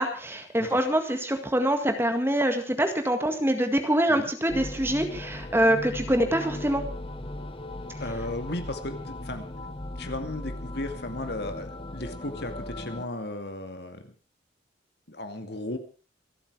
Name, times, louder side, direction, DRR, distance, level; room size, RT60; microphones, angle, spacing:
voice 1, 0.0-6.8, right 1 dB, 10° right, 6 dB, 1.9 m, -25 dB
sound 1, 4.5-13.1, left 1 dB, 30° left, 1.0 m, -37 dB
voice 2, 8.0-9.4 10.0-14.1 15.1-15.8, left 2 dB, 60° left, 7 dB, 2.1 m, -35 dB
26.5 x 9.0 x 4.8 m, 0.36 s
head